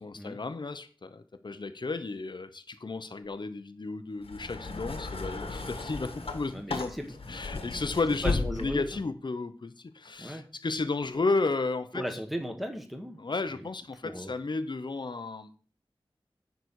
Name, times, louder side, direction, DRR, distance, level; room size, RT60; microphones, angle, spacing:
voice 1, 0.0-6.9 7.3-12.1 13.2-15.5, left 3 dB, 55° left, 0.7 m, -33 dB
sound 1, 4.2-9.0 10.0-10.1, left 3 dB, 85° left, 1.4 m, -35 dB
voice 2, 6.5-7.2 8.2-8.9 10.2-10.4 11.9-13.2 13.6-13.7 14.0-14.3, equal, ahead, 1.4 m, -36 dB
9.4 x 4.1 x 6.3 m
wide cardioid pair, 65°, 9 cm